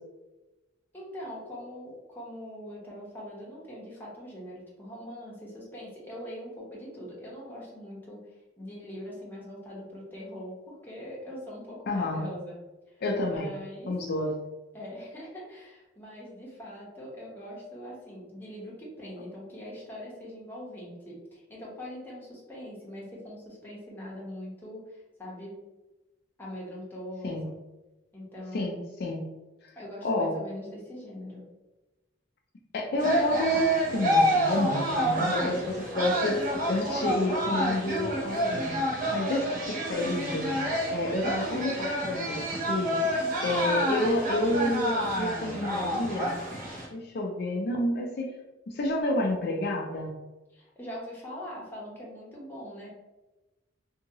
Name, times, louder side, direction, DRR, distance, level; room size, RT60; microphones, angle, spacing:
voice 1, 0.9-8.3 8.6-12.6 12.9-13.9 14.7-25.6 26.4-27.5 28.1-28.7 29.8-31.5 35.1-35.4 50.5-52.9, equal, 10° left, -5 dB, 0.8 m, -42 dB
voice 2, 11.9-12.3 13.0-13.6 13.9-14.3 27.2-27.5 28.5-29.2 30.0-30.3 32.7-36.4 36.7-38.8 39.1-40.6 40.9-42.9 43.4-46.4 46.9-48.3 48.7-50.1, left 1 dB, 55° left, 0 dB, 0.4 m, -29 dB
sound 1, 33.0-46.9, equal, 45° right, 0.9 m, -28 dB
2.8 x 2.7 x 2.7 m, 1.1 s
head